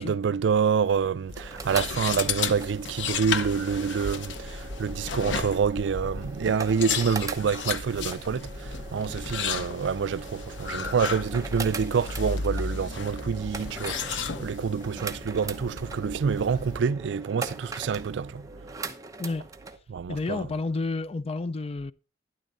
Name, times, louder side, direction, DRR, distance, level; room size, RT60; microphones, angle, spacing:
voice 1, 0.0-18.5 19.9-20.5, right 6 dB, 75° right, 0.4 m, -27 dB
sound 1, 1.2-19.8, right 4 dB, 20° right, 0.9 m, -41 dB
sound 2, 1.3-16.8, left 5 dB, 85° left, 0.7 m, -34 dB
voice 2, 20.1-21.9, left 3 dB, 35° left, 0.4 m, -30 dB
12.0 x 10.5 x 2.5 m
head